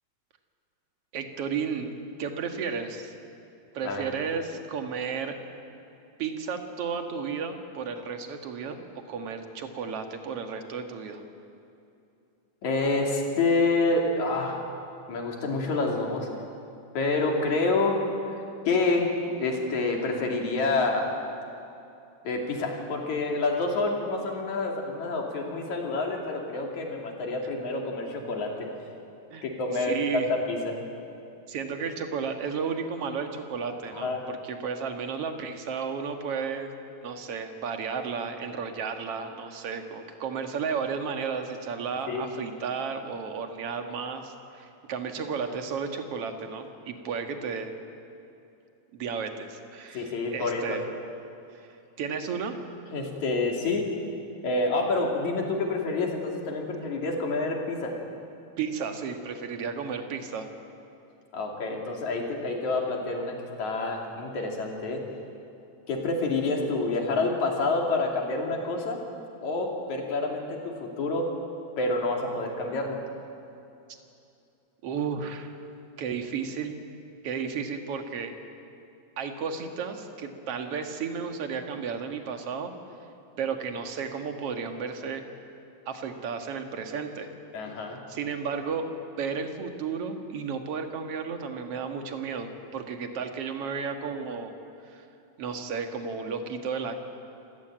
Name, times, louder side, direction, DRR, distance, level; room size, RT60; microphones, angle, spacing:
voice 1, 1.1-1.9 2.2-3.1 3.7-5.4 6.2-11.2 29.3-30.3 31.5-36.7 37.0-47.7 48.9-50.8 52.0-52.6 58.6-60.5 74.8-75.5 76.0-76.7 77.2-78.3 79.2-82.7 83.4-85.2 85.9-87.3 87.7-88.9 89.2-94.5 94.8-95.1 95.4-97.0, right 6 dB, 55° right, 5 dB, 2.4 m, -33 dB
voice 2, 12.6-14.6 15.1-16.3 16.9-19.1 19.4-21.1 22.2-28.7 29.4-30.8 33.9-34.2 42.1-42.2 49.9-50.8 52.9-53.9 54.4-57.9 61.3-65.0 65.9-69.0 69.4-71.3 71.8-73.0 87.5-88.0, left 3 dB, 65° left, 1 dB, 4.1 m, -28 dB
27.0 x 15.5 x 9.0 m, 2.7 s
omnidirectional pair, 3.6 m